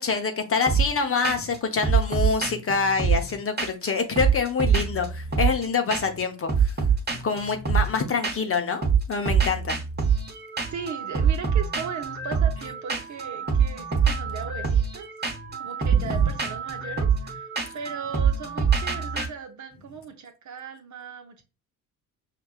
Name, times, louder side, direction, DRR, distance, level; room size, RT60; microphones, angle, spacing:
voice 1, 0.0-6.7 7.2-9.8 16.0-16.1, left 5 dB, 30° left, 0.7 m, -26 dB
sound 1, 0.7-1.0 1.2-1.6 1.8-3.9 4.2-5.6 5.9-6.2 6.5-8.6 8.8-19.3, right 6 dB, 20° right, 1.0 m, -25 dB
voice 2, 10.7-15.1 15.6-21.4, right 6 dB, 40° right, 0.7 m, -38 dB
5.7 x 2.2 x 2.4 m
hypercardioid pair, 50°, 47 cm